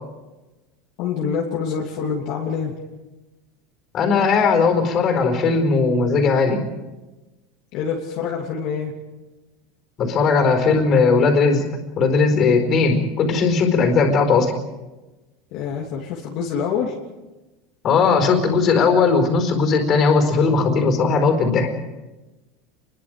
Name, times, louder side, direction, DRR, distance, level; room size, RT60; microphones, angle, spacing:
voice 1, 1.0-2.7 7.7-8.9 15.5-17.0, left 6 dB, 45° left, -2 dB, 3.0 m, -26 dB
voice 2, 3.9-6.6 10.0-11.6 12.0-14.5 17.8-21.7, left 4 dB, 30° left, 6 dB, 4.5 m, -18 dB
29.0 x 22.0 x 5.1 m, 1.1 s
supercardioid pair, 170°, 0 cm